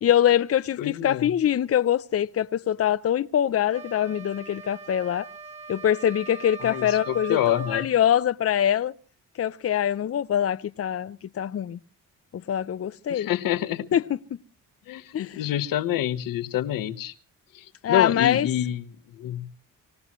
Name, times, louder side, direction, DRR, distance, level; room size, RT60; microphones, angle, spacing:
voice 1, 0.0-5.3 5.7-8.9 9.4-11.8 12.3-13.3 13.9-14.0 15.1-15.4 17.8-18.5, left 10 dB, 45° left, 0.7 m, -24 dB
voice 2, 0.8-1.3 6.6-7.9 13.1-13.9 14.9-17.1 17.5-18.9 19.1-19.5, left 12 dB, 85° left, 1.2 m, -27 dB
sound 1, 3.7-7.9, right 4 dB, 20° right, 3.0 m, -40 dB
25.5 x 17.0 x 3.1 m
cardioid pair, 75°, 33 cm